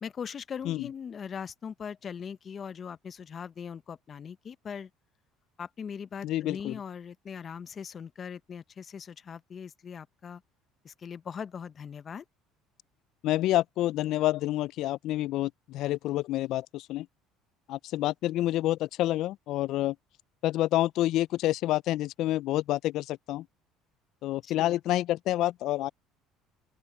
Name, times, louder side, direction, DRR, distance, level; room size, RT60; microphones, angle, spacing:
voice 1, 0.0-4.9 5.6-10.4 10.8-12.2 24.4-24.8, left 7 dB, 40° left, 0.8 m, -40 dB
voice 2, 6.2-6.7 13.2-17.1 17.7-20.0 20.4-23.5 24.2-25.9, left 15 dB, 65° left, 0.4 m, -28 dB
open air
supercardioid pair, 95°, 0 cm